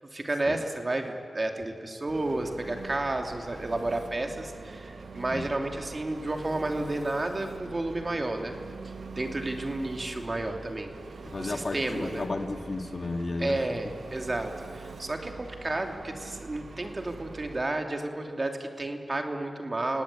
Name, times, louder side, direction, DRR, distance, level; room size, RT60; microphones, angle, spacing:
voice 1, 0.1-8.5 9.1-10.9 11.4-12.2 13.4-20.0, right 2 dB, 40° right, 4 dB, 2.8 m, -31 dB
Engine, 2.1-17.6, right 4 dB, 75° right, 1.5 m, -44 dB
voice 2, 11.2-13.6, left 2 dB, 55° left, 5 dB, 2.3 m, -33 dB
29.0 x 18.0 x 8.5 m, 2.4 s
cardioid pair, 50°, 0 cm